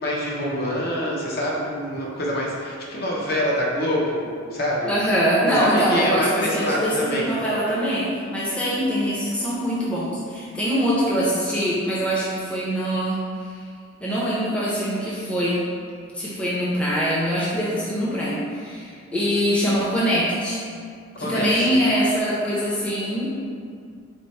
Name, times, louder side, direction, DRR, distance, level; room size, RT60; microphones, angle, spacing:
voice 1, 0.0-4.9 5.5-7.4 21.1-21.8, equal, 50° left, -4 dB, 0.6 m, -26 dB
voice 2, 4.9-13.2 14.0-15.6 16.1-20.6 21.2-23.3, equal, 5° left, -8 dB, 0.5 m, -23 dB
4.3 x 2.0 x 4.1 m, 2.2 s
head